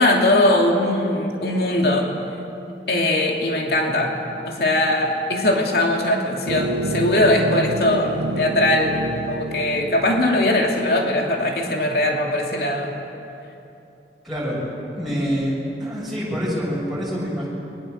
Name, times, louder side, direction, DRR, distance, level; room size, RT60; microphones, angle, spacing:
voice 1, 0.0-2.1 2.9-4.1 4.4-9.0 9.3-12.9, left 1 dB, 65° left, 0 dB, 2.7 m, -20 dB
sound 1, 6.5-11.1, right 1 dB, 75° right, 0.9 m, -28 dB
voice 2, 14.2-14.6 14.9-15.5 15.8-17.5, equal, ahead, -7 dB, 6.8 m, -26 dB
30.0 x 22.5 x 6.5 m, 2.9 s
head